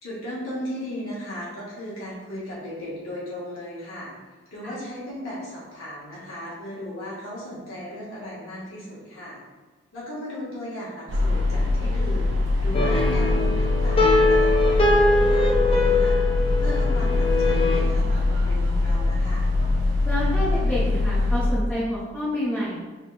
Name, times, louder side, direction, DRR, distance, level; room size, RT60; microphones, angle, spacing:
voice 1, 0.0-4.1 4.5-9.4 9.9-16.2 16.6-19.4, left 1 dB, 85° left, -7 dB, 1.3 m, -36 dB
sound 1, 11.1-21.5, left 2 dB, 60° right, 0.5 m, -22 dB
voice 2, 12.6-13.2 20.0-22.8, equal, 10° left, -12 dB, 0.8 m, -29 dB
sound 2, 12.7-17.8, left 2 dB, 25° left, 0.4 m, -22 dB
3.7 x 2.3 x 3.9 m, 1.3 s
head